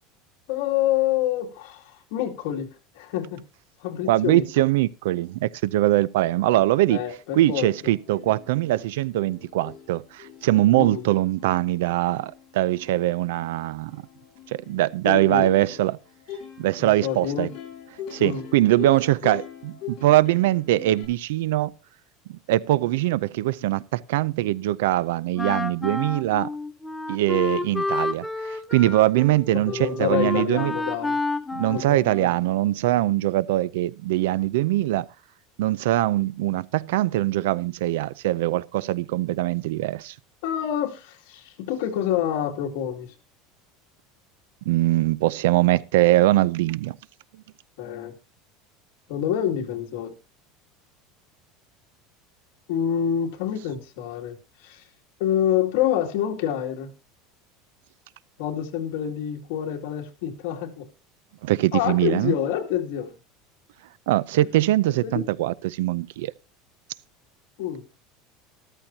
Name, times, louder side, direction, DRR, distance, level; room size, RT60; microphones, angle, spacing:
voice 1, 0.5-3.4 3.8-4.5 6.9-7.9 10.8-11.0 15.0-15.7 16.8-17.5 18.2-18.5 29.5-31.2 31.7-32.3 40.4-43.1 47.8-48.2 49.1-50.1 52.7-54.8 55.2-56.9 58.4-60.8 61.7-63.1 65.0-65.3 67.6-67.8, left 10 dB, 65° left, 2.4 m, -27 dB
voice 2, 4.1-7.0 7.4-14.0 14.7-16.0 16.6-17.5 18.1-21.7 22.3-26.5 27.1-30.7 31.5-35.1 35.6-40.1 44.7-47.0 61.4-62.3 64.1-66.3, right 15 dB, 90° right, 0.5 m, -22 dB
Plucked string instrument, 7.2-7.3 7.5-21.1, left 9 dB, 40° left, 5.4 m, -43 dB
Wind instrument woodwind instrument, 25.4-32.6, left 3 dB, 5° left, 0.8 m, -30 dB
13.5 x 13.5 x 2.8 m
cardioid pair, 170°, 0 cm